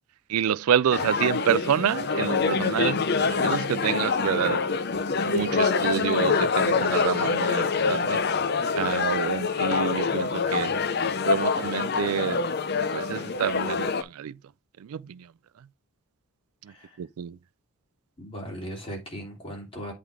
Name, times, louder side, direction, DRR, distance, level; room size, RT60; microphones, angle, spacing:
voice 1, 0.3-4.6 5.2-8.2 8.7-10.7 11.2-12.4 12.9-14.4 14.8-15.3 16.6-17.4, right 8 dB, 80° right, 0.3 m, -28 dB
sound 1, 0.9-14.0, left 5 dB, 45° left, 0.6 m, -25 dB
voice 2, 16.7-17.0 18.2-19.9, equal, 25° left, 2.8 m, -38 dB
8.4 x 3.6 x 4.6 m
head